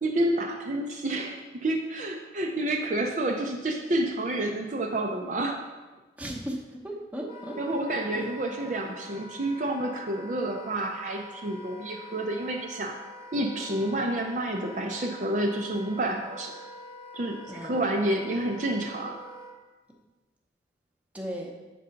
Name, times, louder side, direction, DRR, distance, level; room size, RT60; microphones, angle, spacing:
voice 1, 0.0-5.6 7.6-12.9 13.3-16.6 17.1-19.2, right 1 dB, 40° right, 1 dB, 0.5 m, -29 dB
voice 2, 6.2-7.6 8.1-8.3 17.5-17.8 21.1-21.5, equal, 10° right, -1 dB, 0.9 m, -36 dB
Wind instrument woodwind instrument, 7.3-19.6, left 1 dB, 30° left, 0.9 m, -46 dB
7.5 x 3.8 x 5.6 m, 1.2 s
head